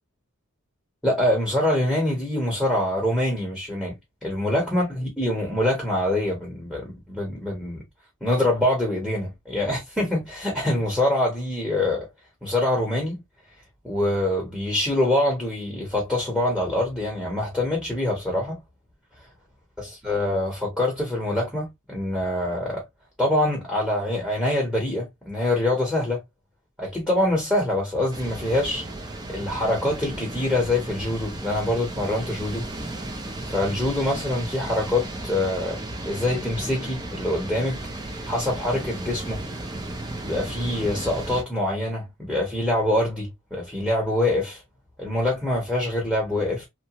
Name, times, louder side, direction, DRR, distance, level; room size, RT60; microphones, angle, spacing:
voice 1, 1.0-3.9 4.2-7.8 8.2-12.1 12.4-13.2 13.8-18.6 19.8-22.8 23.2-26.2 26.8-28.8 29.3-32.6 33.5-37.8 38.2-39.4 40.2-44.6 45.0-46.7, left 1 dB, ahead, 0.9 m, -25 dB
sound 1, 28.1-41.4, right 1 dB, 20° right, 0.5 m, -34 dB
2.8 x 2.1 x 2.8 m
head